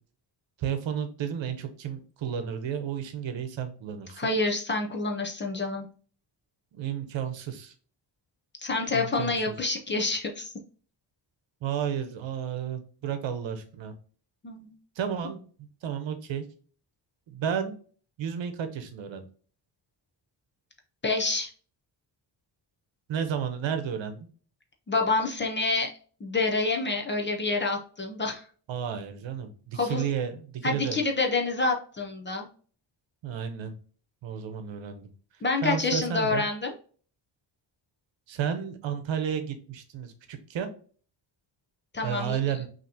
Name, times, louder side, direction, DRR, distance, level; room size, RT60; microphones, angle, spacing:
voice 1, 0.6-4.2 6.7-7.7 8.9-9.3 11.6-13.9 15.0-16.4 17.3-17.8 18.2-19.2 23.1-24.3 28.7-31.0 33.2-33.7 34.2-35.1 35.6-36.4 38.3-40.7 42.0-42.7, right 8 dB, 70° right, 8 dB, 0.9 m, -32 dB
voice 2, 4.2-5.9 8.6-10.5 14.4-14.7 21.0-21.5 24.9-25.9 26.2-28.4 29.7-30.1 30.6-32.5 35.4-36.7 41.9-42.4, left 3 dB, 25° left, 1 dB, 0.6 m, -27 dB
5.6 x 2.9 x 2.7 m, 0.42 s
wide cardioid pair, 175°, 46 cm